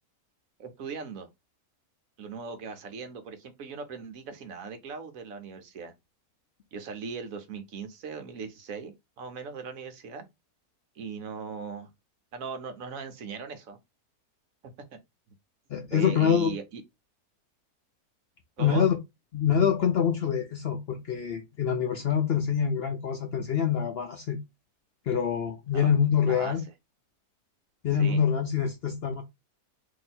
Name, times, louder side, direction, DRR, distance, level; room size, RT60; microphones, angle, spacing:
voice 1, 0.6-1.3 2.2-5.9 6.7-10.2 11.0-11.9 12.3-13.8 15.9-16.8 18.6-18.8 25.7-25.9 26.2-26.6 28.0-28.2, right 5 dB, 65° right, 1.1 m, -39 dB
voice 2, 15.7-16.5 18.6-19.0 19.3-24.4 25.1-26.6 27.8-29.2, left 7 dB, 75° left, 0.5 m, -25 dB
2.8 x 2.7 x 4.2 m
omnidirectional pair, 1.6 m